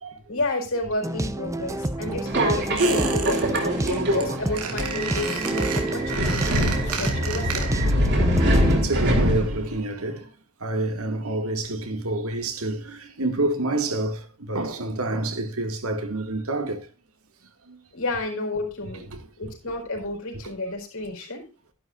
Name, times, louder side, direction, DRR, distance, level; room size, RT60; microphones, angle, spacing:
voice 1, 0.3-7.7 17.9-19.1 19.4-21.5, left 2 dB, 65° left, 4.6 m, -31 dB
sound 1, 1.0-8.8, right 1 dB, 15° right, 0.7 m, -29 dB
Subway metro underground, 2.3-9.8, equal, 50° right, 3.5 m, -24 dB
Squeak, 2.8-3.6 3.9-4.2 4.5-8.0 8.2-8.3, right 6 dB, 90° right, 2.8 m, -32 dB
voice 2, 3.4-4.1 8.7-10.3 10.6-16.9 17.7-17.8 19.1-19.3, right 2 dB, 70° right, 2.1 m, -28 dB
13.5 x 11.5 x 2.5 m
head